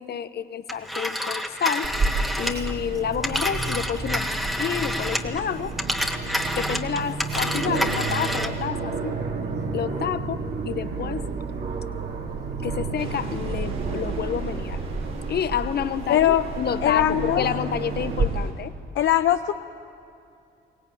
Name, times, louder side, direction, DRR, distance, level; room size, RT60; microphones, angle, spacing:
voice 1, 0.0-1.9 2.4-4.3 4.6-5.7 6.6-9.1 9.7-11.2 12.6-14.8 15.3-18.7, left 8 dB, 55° left, 12 dB, 1.0 m, -29 dB
Telephone, 0.7-5.4 5.7-8.6, equal, ahead, 1.6 m, -28 dB
Aircraft, 1.8-18.2, right 4 dB, 55° right, 2.5 m, -30 dB
sound 1, 13.0-18.5, right 3 dB, 80° right, 4.2 m, -39 dB
voice 2, 16.1-16.4 16.8-17.4 19.0-19.5, left 12 dB, 70° left, 8 dB, 0.7 m, -20 dB
23.0 x 18.0 x 9.0 m, 2.5 s
cardioid pair, 90°, 20 cm